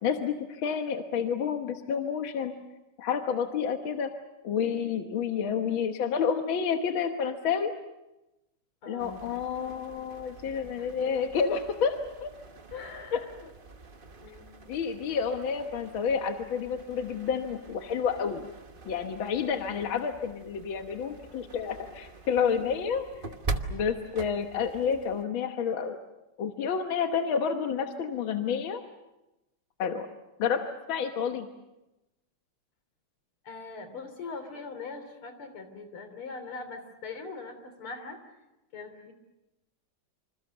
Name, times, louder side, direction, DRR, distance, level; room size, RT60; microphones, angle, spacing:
voice 1, 0.0-2.5 3.0-4.1 4.4-7.7 8.9-12.3 13.1-13.2 14.7-18.4 18.9-23.4 23.7-26.0 26.4-28.8 29.8-30.1 30.4-31.5, left 6 dB, 70° left, 5 dB, 2.0 m, -29 dB
voice 2, 8.8-9.2 10.8-10.9 12.7-13.5 14.2-14.5 33.4-38.4 38.7-39.1, left 4 dB, 90° left, 8 dB, 4.1 m, -41 dB
sound 1, 9.0-25.2, right 3 dB, 30° right, 1.1 m, -43 dB
27.0 x 26.5 x 6.8 m, 0.98 s
omnidirectional pair, 2.3 m